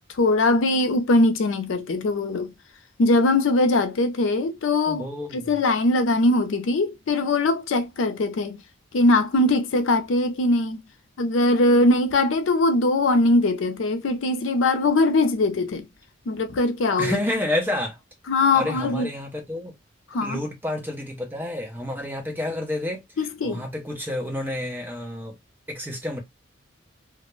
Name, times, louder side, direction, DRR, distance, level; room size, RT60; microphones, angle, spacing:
voice 1, 0.2-2.5 3.0-5.1 5.3-8.6 8.9-10.8 11.2-15.9 16.3-17.2 18.3-19.1 20.1-20.4 23.2-23.6, left 2 dB, 75° left, 0.4 m, -21 dB
voice 2, 4.9-5.6 17.0-18.0 18.5-19.7 20.2-25.4 25.7-26.2, left 1 dB, 10° right, 0.6 m, -29 dB
2.3 x 2.1 x 3.0 m
head